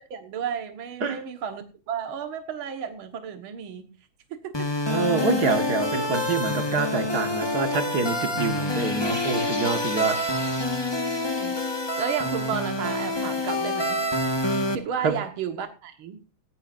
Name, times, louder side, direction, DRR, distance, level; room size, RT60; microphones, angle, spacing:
voice 1, 0.1-3.9 4.3-4.7 11.4-11.6 12.0-14.0 14.7-16.2, right 7 dB, 80° right, 2.2 m, -33 dB
sound 1, 4.5-14.8, left 1 dB, 15° left, 1.3 m, -27 dB
voice 2, 4.9-10.2 15.0-15.2, right 4 dB, 50° right, 2.0 m, -26 dB
18.0 x 15.5 x 2.5 m
omnidirectional pair, 2.3 m